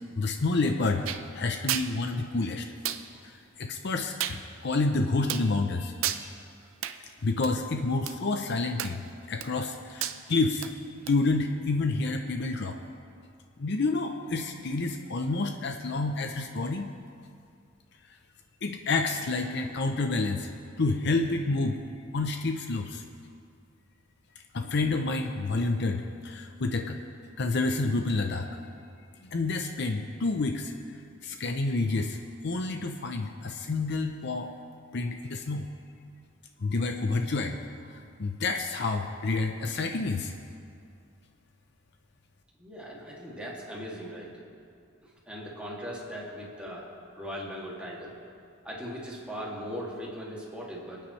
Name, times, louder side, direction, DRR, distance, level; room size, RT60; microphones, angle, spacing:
voice 1, 0.1-1.1 1.3-2.7 3.6-6.3 7.2-9.0 9.3-10.7 11.1-12.8 13.6-16.9 18.6-20.5 20.8-21.8 22.1-23.0 24.5-27.0 27.4-28.5 29.2-30.7 31.2-32.2 32.4-34.5 34.9-35.7 36.6-37.6 37.9-40.3, left 3 dB, 55° left, 5 dB, 0.6 m, -29 dB
sound 1, 1.1-1.2 1.7-1.9 2.9-3.0 4.2-4.4 5.3-5.5 6.0-6.2 6.8-7.0 7.4-7.5 8.1-8.2 8.8-9.1 9.4-9.7 10.0-10.2 10.6-10.7 11.1-11.2, right 11 dB, 80° right, 0.6 m, -31 dB
voice 2, 42.6-44.3 45.0-46.9 47.2-48.1 48.6-51.0, equal, 5° right, -5 dB, 2.4 m, -39 dB
27.5 x 9.2 x 3.2 m, 2.4 s
head